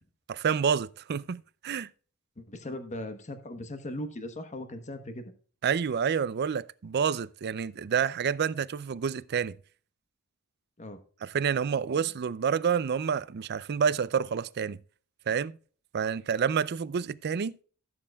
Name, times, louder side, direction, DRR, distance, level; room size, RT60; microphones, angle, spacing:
voice 1, 0.3-1.9 5.6-9.6 11.2-14.8 15.3-15.6 15.9-17.6, right 7 dB, 50° right, 0.4 m, -28 dB
voice 2, 2.4-5.3 10.8-11.0, left 1 dB, 35° left, 1.1 m, -39 dB
15.5 x 7.5 x 2.3 m
head